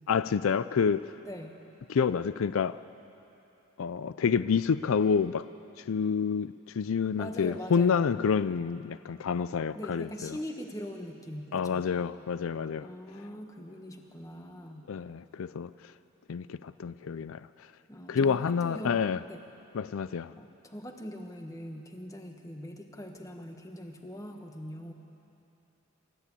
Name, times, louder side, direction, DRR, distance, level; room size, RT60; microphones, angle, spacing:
voice 1, 0.1-1.1 1.9-2.8 3.8-5.5 5.8-10.4 11.5-12.9 14.9-15.7 16.3-17.5 18.1-19.2 19.7-20.3, left 6 dB, 80° left, 14 dB, 0.4 m, -28 dB
voice 2, 1.2-1.6 7.2-8.1 9.7-11.9 12.8-14.9 17.9-19.0 19.3-19.4 20.4-24.9, equal, 15° left, 4 dB, 1.4 m, -42 dB
28.0 x 14.0 x 8.4 m, 3.0 s
head